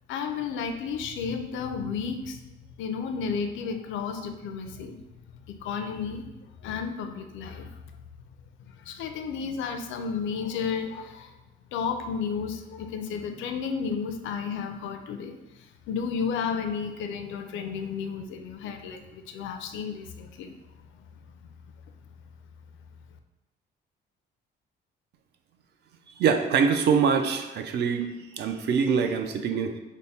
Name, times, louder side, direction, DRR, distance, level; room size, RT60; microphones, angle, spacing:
voice 1, 0.1-2.4 2.8-5.0 5.5-6.3 6.6-7.8 8.6-11.4 11.7-20.6, left 6 dB, 80° left, 7 dB, 0.4 m, -32 dB
voice 2, 26.2-28.1 28.4-29.7, right 6 dB, 60° right, 6 dB, 0.4 m, -24 dB
3.5 x 2.1 x 4.0 m, 1.1 s
cardioid pair, 135°, 19 cm